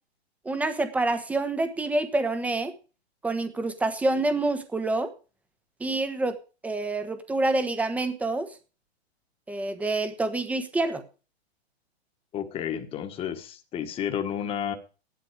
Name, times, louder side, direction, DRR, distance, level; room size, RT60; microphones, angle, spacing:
voice 1, 0.4-2.7 3.2-5.1 5.8-6.4 6.6-8.5 9.5-11.0, right 2 dB, 5° right, 9 dB, 1.1 m, -27 dB
voice 2, 12.3-14.7, left 9 dB, 15° left, 6 dB, 1.6 m, -31 dB
15.0 x 11.5 x 5.0 m, 0.35 s
hypercardioid pair, 155°, 32 cm